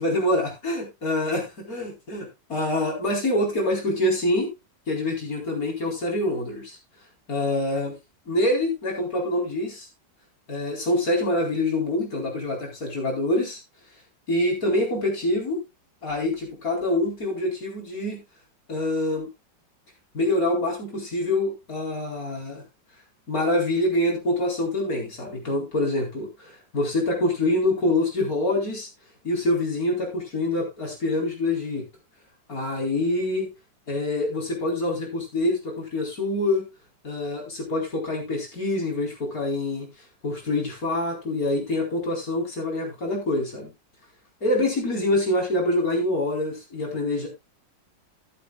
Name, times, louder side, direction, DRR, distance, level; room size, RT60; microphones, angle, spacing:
voice 1, 0.0-4.5 4.9-6.8 7.3-7.9 8.3-9.9 10.5-13.6 14.3-15.6 16.0-18.2 18.7-19.3 20.1-22.6 23.3-28.9 29.2-31.9 32.5-33.5 33.9-36.6 37.0-39.9 40.2-43.7 44.4-47.3, left 1 dB, 50° left, -1 dB, 4.7 m, -25 dB
13.0 x 11.5 x 2.4 m, 0.23 s
omnidirectional pair, 2.0 m